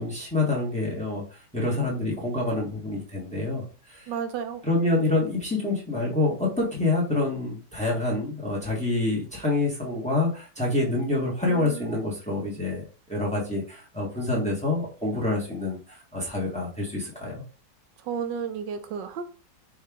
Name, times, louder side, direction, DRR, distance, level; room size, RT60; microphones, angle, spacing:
voice 1, 0.0-4.1 4.6-12.8 13.1-17.4, left 2 dB, 5° left, -3 dB, 1.0 m, -27 dB
voice 2, 4.1-4.6 11.4-11.9 18.0-19.2, right 7 dB, 90° right, 8 dB, 1.3 m, -32 dB
4.7 x 2.7 x 3.5 m, 0.37 s
omnidirectional pair, 1.9 m